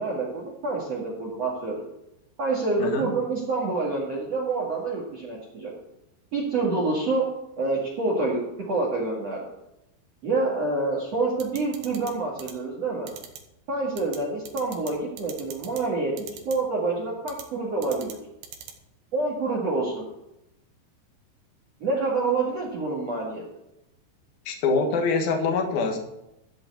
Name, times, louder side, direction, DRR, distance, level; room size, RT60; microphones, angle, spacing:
voice 1, 0.0-1.8 2.4-5.7 6.3-7.2 7.6-9.4 10.2-13.1 13.7-16.1 16.4-18.2 19.1-20.0 21.8-23.4, right 3 dB, 45° right, -4 dB, 2.6 m, -27 dB
sound 1, 11.4-12.1 12.4-12.5 13.1-13.4 14.0-14.2 14.5-14.9 15.2-15.8 16.2-16.5 17.3-17.4 17.8-18.1 18.4-18.7, right 8 dB, 70° right, 3.1 m, -40 dB
voice 2, 24.5-26.0, left 4 dB, 60° left, 3 dB, 3.1 m, -24 dB
13.0 x 5.3 x 8.1 m, 0.89 s
omnidirectional pair, 5.2 m